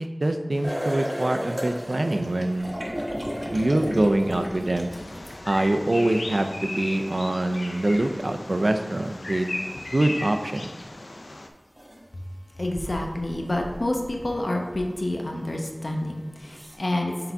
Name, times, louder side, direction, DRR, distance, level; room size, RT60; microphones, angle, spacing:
voice 1, 0.0-2.7 3.5-4.9 5.5-9.6 9.9-10.7, right 1 dB, 70° right, 6 dB, 0.5 m, -24 dB
sound 1, 0.6-5.9 7.9-8.0 10.9-11.0 11.8-12.0 12.7-14.4 14.8-14.9 15.8-15.9 16.4-16.8, equal, 25° right, 1.2 m, -34 dB
Bird vocalization bird call bird song, 4.9-11.5, left 2 dB, 90° left, 0.5 m, -36 dB
voice 2, 12.5-17.3, left 1 dB, 65° left, 1 dB, 0.8 m, -28 dB
5.8 x 3.9 x 4.6 m, 1.2 s
wide cardioid pair, 45°, 0 cm